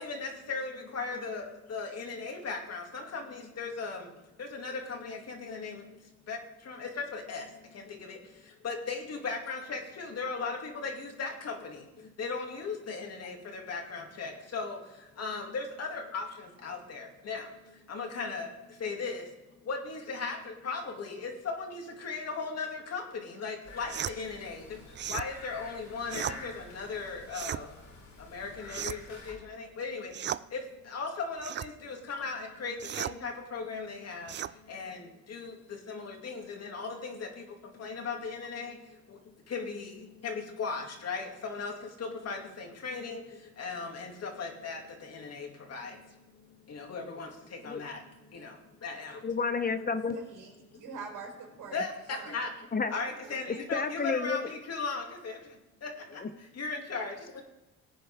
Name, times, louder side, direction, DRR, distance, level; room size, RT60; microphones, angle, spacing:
voice 1, 0.0-14.8 15.2-19.3 19.6-24.8 25.1-27.8 28.2-49.3 50.1-50.2 51.7-52.5 52.9-55.4 55.8-57.4, left 4 dB, 55° left, 2 dB, 2.6 m, -38 dB
sound 1, 23.6-29.3, left 3 dB, 80° left, 5.0 m, -48 dB
sound 2, 23.9-24.2 24.9-25.3 26.1-26.4 27.3-27.6 28.7-29.1 30.1-30.4 31.4-31.7 32.8-33.2 34.3-34.5, right 10 dB, 40° right, 0.4 m, -35 dB
voice 2, 49.2-50.1 52.7-52.9 53.5-54.5 56.2-56.3, left 5 dB, 30° left, 10 dB, 0.8 m, -30 dB
voice 3, 50.1-51.8 52.2-52.5 53.0-53.9, right 5 dB, 85° right, 0 dB, 4.4 m, -45 dB
18.5 x 8.7 x 3.6 m, 1.0 s
cardioid pair, 90°, 30 cm